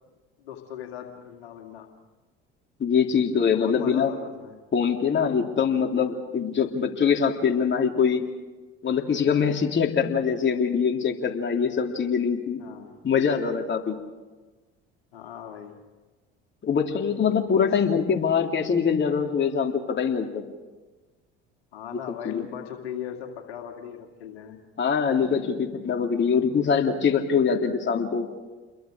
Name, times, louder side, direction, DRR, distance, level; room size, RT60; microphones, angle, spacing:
voice 1, 0.4-1.9 3.5-4.5 12.6-13.0 15.1-15.8 17.5-17.7 21.7-24.6, left 9 dB, 85° left, 3 dB, 2.4 m, -38 dB
voice 2, 2.8-4.1 4.7-8.2 8.8-12.6 13.0-14.0 16.6-20.4 21.9-22.5 24.8-28.3, left 6 dB, 40° left, 2 dB, 3.2 m, -23 dB
29.0 x 22.5 x 5.1 m, 1.3 s
hypercardioid pair, 70°, 30 cm